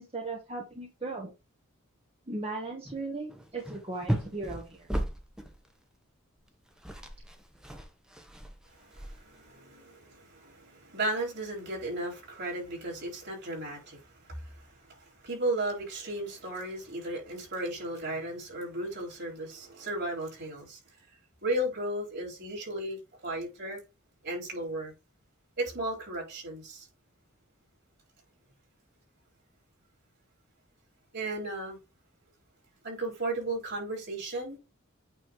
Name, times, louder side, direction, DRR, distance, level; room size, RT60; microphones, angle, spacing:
voice 1, 0.0-1.3 2.3-4.9, right 3 dB, 30° right, 1.2 m, -37 dB
sound 1, 2.9-3.0 3.3-5.7 6.4-6.5 6.7-9.5, right 1 dB, 5° right, 0.8 m, -36 dB
voice 2, 8.7-20.8 21.4-23.8 24.2-24.9 25.6-26.9 31.1-31.8 32.8-34.6, right 1 dB, 50° right, 4.3 m, -35 dB
8.9 x 3.1 x 4.7 m
head